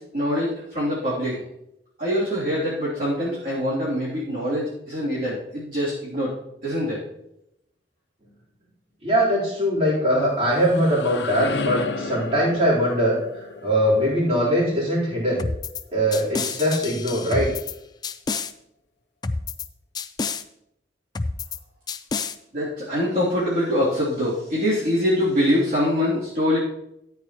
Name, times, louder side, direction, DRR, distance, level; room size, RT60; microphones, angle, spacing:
voice 1, 0.0-1.4 2.0-6.3 6.6-7.0 22.5-26.6, equal, 50° right, -9 dB, 3.3 m, -24 dB
voice 2, 9.0-13.2 13.6-15.4 15.9-17.5, equal, 35° right, -7 dB, 4.1 m, -21 dB
sound 1, 10.2-16.0, left 3 dB, 70° left, 0.9 m, -34 dB
sound 2, 15.4-15.8 16.1-17.7 18.0-18.5 19.2-19.7 20.0-20.4 21.2-21.6 21.9-22.4, left 4 dB, 20° left, 0.4 m, -29 dB
13.5 x 9.0 x 3.1 m, 0.80 s
head